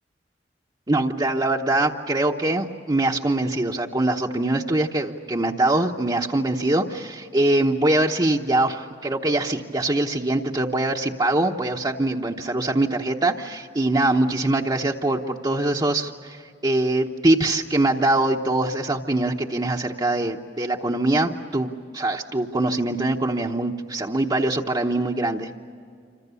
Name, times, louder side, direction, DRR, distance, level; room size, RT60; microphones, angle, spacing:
voice 1, 0.9-25.5, right 2 dB, 25° right, -1 dB, 1.0 m, -23 dB
27.5 x 26.0 x 7.0 m, 2.2 s
head